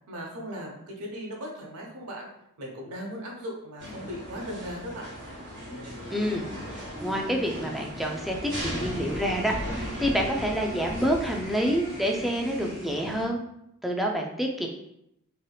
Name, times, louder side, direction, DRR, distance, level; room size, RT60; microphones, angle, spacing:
voice 1, 0.1-2.3 2.6-5.1, equal, 85° right, -1 dB, 0.8 m, -38 dB
sound 1, 3.8-13.2, equal, 55° right, 1.4 m, -37 dB
voice 2, 6.1-6.5 6.7-13.4 13.8-14.7, equal, ahead, 0 dB, 0.3 m, -28 dB
Bowed string instrument, 8.6-12.2, left 2 dB, 35° left, 1.0 m, -47 dB
3.2 x 2.7 x 2.3 m, 0.78 s
head